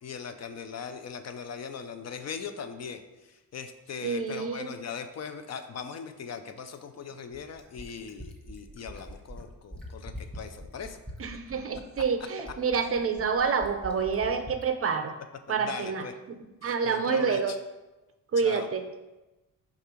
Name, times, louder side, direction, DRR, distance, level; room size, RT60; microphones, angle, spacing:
voice 1, 0.0-11.0 12.0-12.1 15.5-16.1 16.6-17.6 18.4-18.7, left 6 dB, 50° left, 8 dB, 0.5 m, -40 dB
voice 2, 4.0-4.7 11.2-15.1 15.5-17.5 18.3-18.8, right 5 dB, 40° right, 7 dB, 0.5 m, -28 dB
Fill (with liquid), 6.6-14.7 16.0-16.1, equal, 5° left, 0.9 m, -43 dB
5.2 x 3.6 x 5.7 m, 1.1 s
cardioid pair, 140°, 35 cm